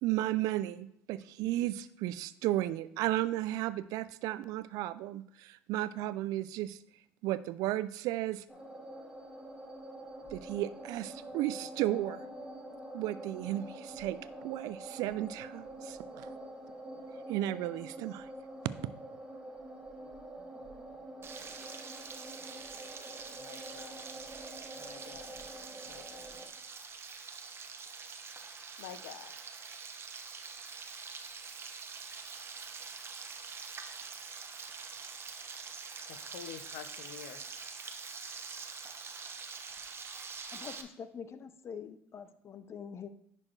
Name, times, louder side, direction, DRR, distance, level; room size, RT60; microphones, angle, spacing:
voice 1, 0.0-6.8 7.2-8.4 10.3-12.2 12.9-14.2 14.4-16.3 17.3-18.3, right 15 dB, 70° right, 16 dB, 0.4 m, -34 dB
sound 1, 8.5-26.5, right 1 dB, 15° right, 1.8 m, -46 dB
Frying (food), 21.2-40.8, right 5 dB, 40° right, 0.9 m, -45 dB
voice 2, 23.3-24.0 24.7-25.4 25.8-26.3 28.8-29.3 36.0-37.4, left 10 dB, 85° left, 10 dB, 0.6 m, -48 dB
voice 3, 40.5-43.1, left 7 dB, 45° left, 11 dB, 0.7 m, -45 dB
10.5 x 4.4 x 3.2 m, 0.72 s
hypercardioid pair, 70°, 6 cm